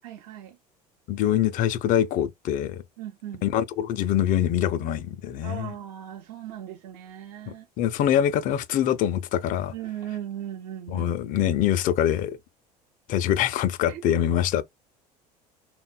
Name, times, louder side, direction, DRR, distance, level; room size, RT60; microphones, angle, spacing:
voice 1, 0.0-0.6 3.0-3.4 5.4-7.6 9.7-11.4 13.9-14.0, right 11 dB, 60° right, 0.6 m, -38 dB
voice 2, 1.1-2.8 3.4-5.7 7.8-9.7 10.9-12.4 13.1-14.6, left 10 dB, 40° left, 0.4 m, -24 dB
3.5 x 2.1 x 2.2 m
figure-of-eight pair, 70°, 21 cm